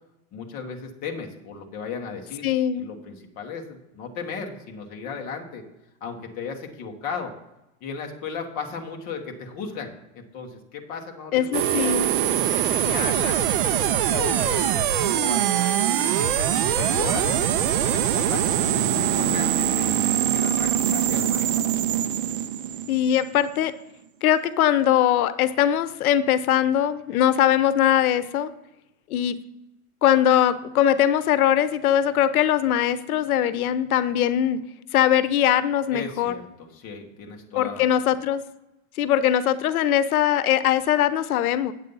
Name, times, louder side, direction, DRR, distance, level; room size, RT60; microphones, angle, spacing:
voice 1, 0.3-2.5 2.7-5.6 6.0-7.3 7.8-12.0 12.5-18.5 19.0-21.7 35.9-38.0, left 5 dB, 20° left, 2 dB, 1.0 m, -36 dB
voice 2, 2.4-2.8 11.3-12.1 22.9-23.7 24.2-28.5 29.1-29.4 30.0-34.6 34.9-36.3 37.6-38.4 39.0-41.7, left 10 dB, 90° left, 15 dB, 0.8 m, -21 dB
sound 1, 11.5-23.5, right 10 dB, 40° right, 0.4 m, -23 dB
8.3 x 8.1 x 5.4 m, 0.91 s
supercardioid pair, 175°, 42 cm